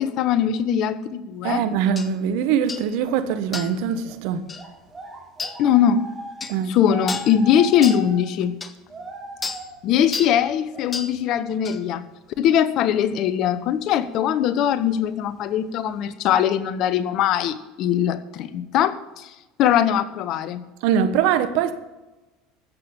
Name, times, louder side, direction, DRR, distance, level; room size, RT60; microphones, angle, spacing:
voice 1, 0.0-1.6 5.6-6.0 6.7-8.6 9.8-12.1 12.4-19.3 19.6-20.7, left 9 dB, 55° left, 0.9 m, -21 dB
voice 2, 1.4-4.4 6.5-6.7 20.8-21.7, right 8 dB, 65° right, 1.2 m, -22 dB
sound 1, 2.0-2.1 2.7-2.9 3.5-3.8 4.5-4.7 5.4-5.6 6.4-6.6 7.1-7.3 7.8-8.0 8.6-8.7 9.4-9.6 10.1-10.4 10.9-11.1 11.6-11.8, left 4 dB, 25° left, 1.2 m, -31 dB
sound 2, 3.2-3.5 4.0-11.6 11.9-12.2 13.3-13.4 13.7-14.1 14.7-15.0 15.6-15.7 16.0-16.1, right 1 dB, 25° right, 4.5 m, -38 dB
14.0 x 7.8 x 7.0 m
hypercardioid pair, 80°, 0 cm